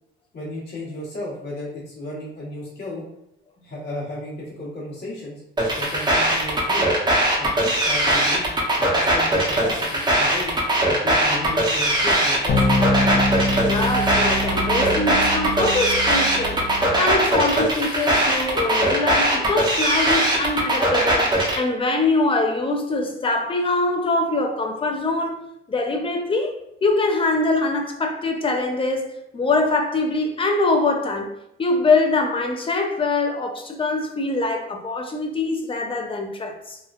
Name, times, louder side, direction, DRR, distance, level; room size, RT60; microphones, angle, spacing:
voice 1, 0.3-3.0 3.6-5.4 5.8-7.0 7.4-8.5 8.8-10.5 10.8-12.9, left 1 dB, 55° left, 1.1 m, -34 dB
sound 1, 5.6-21.6, right 1 dB, 20° right, 0.7 m, -20 dB
sound 2, 12.5-17.3, left 1 dB, 80° left, 0.6 m, -25 dB
voice 2, 13.6-16.6 17.0-31.3 31.6-36.8, left 2 dB, 25° left, 0.5 m, -23 dB
3.0 x 2.2 x 2.3 m
cardioid pair, 90°, 20 cm